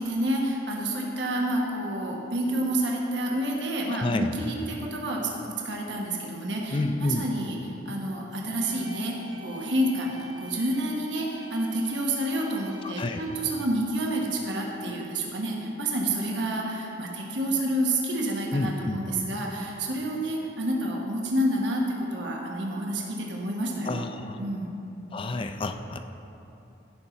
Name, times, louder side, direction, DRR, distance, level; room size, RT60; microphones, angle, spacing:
voice 1, 0.0-7.6 7.8-24.1 24.4-24.8, right 1 dB, 85° right, -1 dB, 1.3 m, -29 dB
voice 2, 3.9-4.4 6.7-7.3 12.8-13.2 18.5-19.0 23.9-24.4 25.1-26.0, left 2 dB, 30° left, 8 dB, 0.4 m, -29 dB
sound 1, 8.6-13.6, right 1 dB, 25° right, 0.7 m, -46 dB
15.0 x 5.9 x 4.0 m, 2.9 s
head